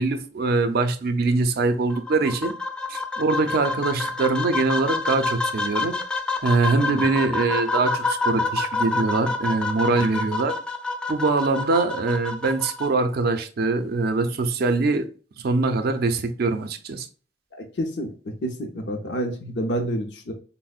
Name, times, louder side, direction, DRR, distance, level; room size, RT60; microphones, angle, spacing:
voice 1, 0.0-2.5 2.9-6.0 6.4-10.5 11.1-15.1 15.4-17.1, right 3 dB, 60° right, 0.4 m, -23 dB
sound 1, 1.9-12.9, left 3 dB, 5° left, 0.4 m, -28 dB
voice 2, 17.5-20.3, equal, 75° left, 0.6 m, -29 dB
4.1 x 2.0 x 2.3 m
head